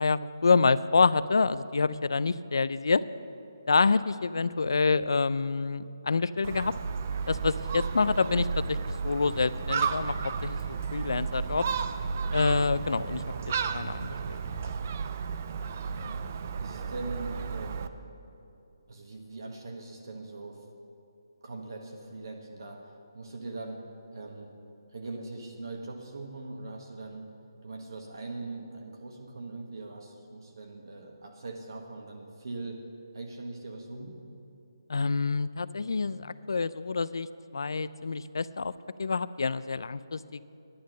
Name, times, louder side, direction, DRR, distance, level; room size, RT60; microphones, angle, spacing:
voice 1, 0.0-3.0 3.7-6.7 7.3-8.8 9.0-10.2 10.4-10.6 10.9-11.7 12.3-13.2 13.7-14.6 34.9-37.3 37.5-38.7 39.0-40.4, left 4 dB, 75° left, 16 dB, 0.4 m, -27 dB
Gull seagull, 6.4-17.9, right 5 dB, 30° right, 0.4 m, -33 dB
voice 2, 15.9-17.9 18.9-20.6 21.4-22.8 23.1-23.8 24.1-24.5 24.9-27.3 27.6-32.8 33.1-34.2, right 2 dB, 60° right, 2 dB, 1.4 m, -41 dB
10.5 x 10.5 x 6.4 m, 2.7 s
hypercardioid pair, 175°, 2 cm